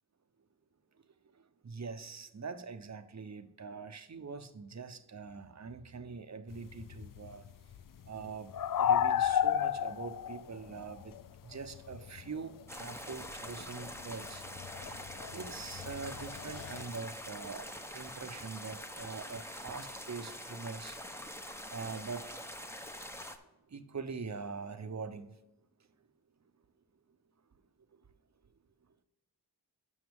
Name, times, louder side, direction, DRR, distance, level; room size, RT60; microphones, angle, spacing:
voice 1, 1.3-7.4 8.1-11.1 11.4-14.4 15.3-21.0 21.7-22.7 23.7-25.3, right 5 dB, 45° right, 0.8 m, -43 dB
sound 1, 6.5-12.6 12.9-16.8, left 9 dB, 60° left, 0.5 m, -33 dB
sound 2, 12.7-23.4, equal, 5° left, 0.9 m, -45 dB
9.5 x 6.3 x 3.6 m
cardioid pair, 45°, 39 cm